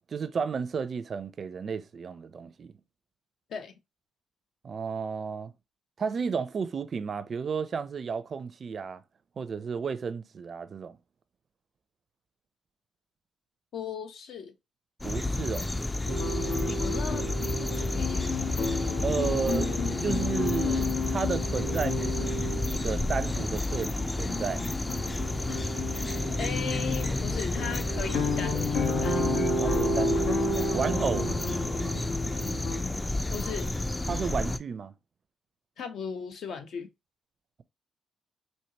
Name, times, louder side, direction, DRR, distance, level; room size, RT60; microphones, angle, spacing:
voice 1, 0.1-2.7 4.6-5.5 6.0-9.0 9.4-11.0 15.0-15.7 16.3-16.4 19.0-19.8 20.0-24.6 29.6-31.3 34.1-34.9, right 6 dB, 45° right, 0.5 m, -33 dB
voice 2, 13.7-14.5 16.7-18.5 26.4-29.3 33.3-33.7 35.8-36.9, left 6 dB, 70° left, 0.8 m, -37 dB
sound 1, 15.0-34.6, left 2 dB, 15° left, 0.4 m, -31 dB
sound 2, 16.1-32.8, left 2 dB, 90° left, 1.1 m, -32 dB
4.5 x 2.8 x 2.8 m
cardioid pair, 90°, 0 cm